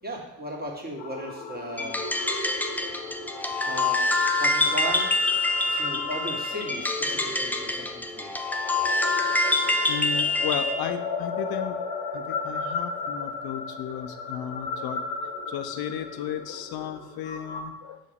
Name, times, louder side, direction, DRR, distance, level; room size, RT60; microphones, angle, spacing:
voice 1, 0.0-2.0 3.6-4.0 4.3-5.1 5.7-8.3, right 1 dB, 20° right, -1 dB, 1.9 m, -36 dB
sound 1, 1.0-17.6, left 4 dB, 65° left, 1.1 m, -36 dB
sound 2, 1.8-10.8, left 2 dB, 5° left, 0.4 m, -26 dB
voice 2, 9.9-11.8 12.1-15.0 15.5-18.0, left 9 dB, 50° left, 9 dB, 0.8 m, -34 dB
6.3 x 5.5 x 3.6 m, 0.93 s
figure-of-eight pair, 50°, 48 cm